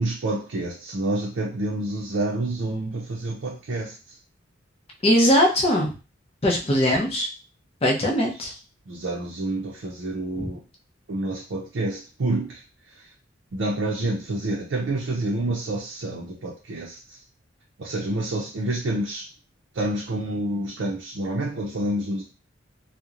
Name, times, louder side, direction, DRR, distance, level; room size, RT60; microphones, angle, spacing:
voice 1, 0.0-4.2 8.4-8.5 8.9-10.6 11.1-12.6 12.9-13.1 13.5-17.2 17.8-19.2 19.7-22.2, right 1 dB, 70° right, -2 dB, 0.5 m, -28 dB
voice 2, 5.0-5.9 6.4-7.3 7.8-8.5 10.4-10.5, equal, 30° left, -1 dB, 0.6 m, -20 dB
2.9 x 2.0 x 2.4 m, 0.32 s
head